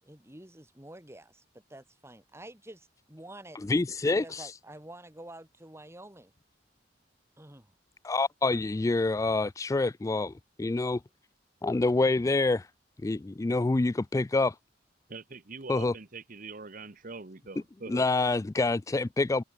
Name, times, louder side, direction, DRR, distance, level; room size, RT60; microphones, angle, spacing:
voice 1, 0.0-3.6 4.2-6.3 7.4-7.7, right 1 dB, 15° right, 3.4 m, -48 dB
voice 2, 3.7-4.5 8.0-11.0 11.6-12.7 13.0-14.5 15.7-15.9 17.9-19.4, left 3 dB, 20° left, 0.3 m, -27 dB
voice 3, 15.1-18.1, right 3 dB, 50° right, 1.2 m, -43 dB
head